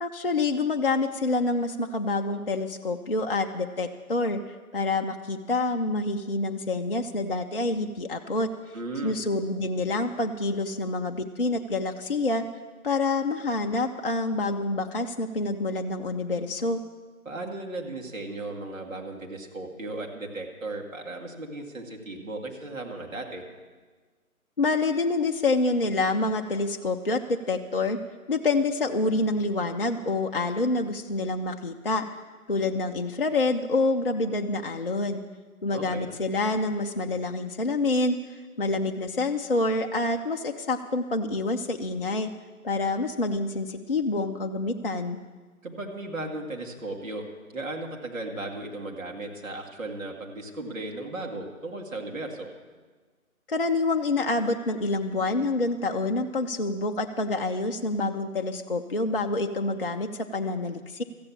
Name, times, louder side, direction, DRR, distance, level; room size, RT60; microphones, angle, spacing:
voice 1, 0.0-8.7 9.0-12.4 12.8-16.8 24.6-28.0 28.3-32.0 32.5-35.2 35.6-42.3 42.6-45.2 53.5-61.0, left 2 dB, 40° left, 4 dB, 0.5 m, -27 dB
voice 2, 8.7-9.2 17.3-23.4 35.7-36.1 45.6-47.3 47.5-52.5, right 2 dB, 60° right, 1 dB, 2.1 m, -36 dB
14.0 x 8.6 x 7.2 m, 1.4 s
figure-of-eight pair, 150°, 44 cm